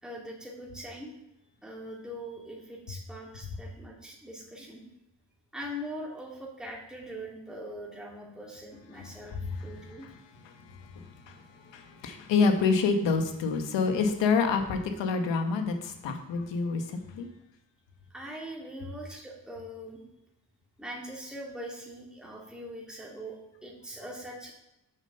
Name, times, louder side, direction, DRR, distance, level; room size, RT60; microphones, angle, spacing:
voice 1, 0.0-1.1 1.6-4.8 5.5-9.4 9.6-10.1 18.1-20.0 20.8-24.5, equal, ahead, -2 dB, 2.3 m, -42 dB
voice 2, 9.3-9.7 10.0-10.1 10.4-17.3, left 4 dB, 85° left, 6 dB, 1.3 m, -28 dB
7.1 x 5.5 x 5.6 m, 0.85 s
cardioid pair, 65°, 43 cm